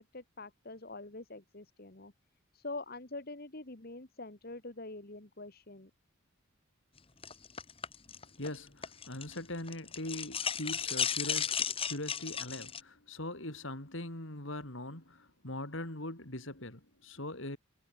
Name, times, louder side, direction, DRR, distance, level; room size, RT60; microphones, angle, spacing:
voice 1, 0.1-2.1 2.5-5.9, left 2 dB, 45° left, 1.8 m, -45 dB
sound 1, 7.2-9.4 9.7-12.8, left 7 dB, 25° left, 1.8 m, -34 dB
voice 2, 8.4-17.6, left 1 dB, 60° left, 4.2 m, -41 dB
head